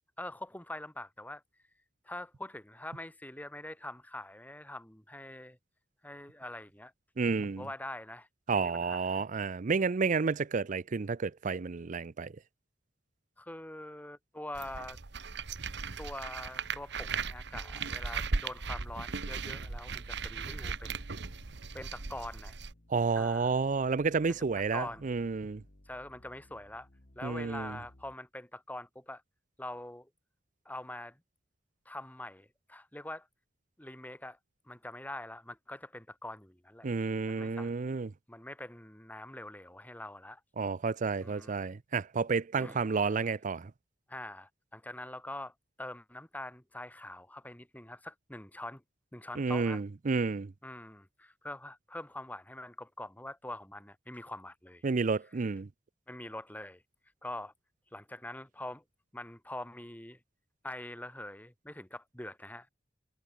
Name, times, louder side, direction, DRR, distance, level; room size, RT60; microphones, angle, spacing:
voice 1, 0.2-1.4 2.0-5.6 6.0-6.9 7.4-9.2 13.4-15.0 16.0-21.0 21.7-22.6 23.1-23.5 24.3-24.4 24.7-25.1 25.9-26.9 27.2-29.2 29.6-30.1 30.6-31.2 31.9-33.3 33.8-34.4 34.7-36.9 37.3-37.7 38.3-40.4 41.2-41.7 42.6-43.1 44.1-48.8 49.1-49.8 50.6-54.8 56.1-56.8 57.2-57.5 57.9-58.8 59.1-60.2 60.6-62.7, left 1 dB, 10° left, 2.5 m, -44 dB
voice 2, 7.2-7.7 8.5-12.3 22.9-25.6 27.2-27.8 36.8-38.1 40.6-43.7 49.4-50.5 54.8-55.7, right 4 dB, 45° right, 0.5 m, -31 dB
sound 1, 14.5-22.7, right 4 dB, 65° right, 1.2 m, -37 dB
sound 2, 17.2-28.2, left 1 dB, 50° left, 2.2 m, -60 dB
head